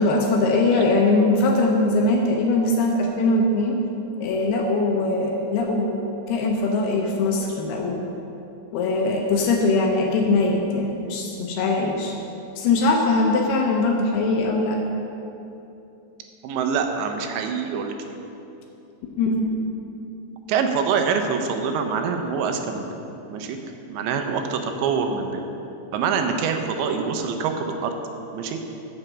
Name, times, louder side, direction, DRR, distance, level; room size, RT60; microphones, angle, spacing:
voice 1, 0.0-3.8 4.2-8.0 8.7-12.1 12.6-14.8 19.2-19.4, left 2 dB, 80° left, 1 dB, 2.3 m, -21 dB
voice 2, 16.4-18.0 20.5-23.0 23.3-23.6 23.9-25.5 25.9-27.9 28.3-28.6, right 6 dB, 80° right, 5 dB, 2.8 m, -25 dB
7.7 x 6.4 x 7.2 m, 2.9 s
omnidirectional pair, 5.3 m